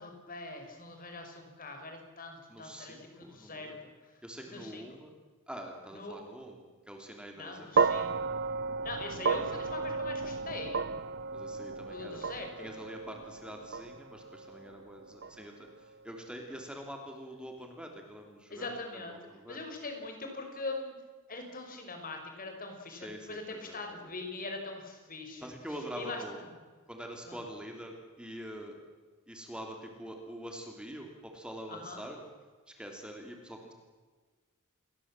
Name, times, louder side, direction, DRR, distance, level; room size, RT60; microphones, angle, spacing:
voice 1, 0.0-3.8 4.1-4.2 4.5-4.8 5.9-6.2 7.4-8.3 8.8-10.9 11.9-12.7 18.5-19.2 19.5-20.9 21.3-25.5 25.9-26.4 27.3-27.4 31.7-32.0, left 3 dB, 40° left, 4 dB, 5.5 m, -42 dB
voice 2, 2.5-3.8 4.2-5.1 5.5-7.7 11.3-12.2 12.6-19.6 22.9-24.1 25.4-26.5 26.9-28.8 29.3-32.3 32.7-33.7, equal, 5° right, 2 dB, 3.2 m, -45 dB
sound 1, 7.8-16.1, right 4 dB, 55° right, 0.8 m, -34 dB
29.0 x 21.5 x 7.6 m, 1.4 s
head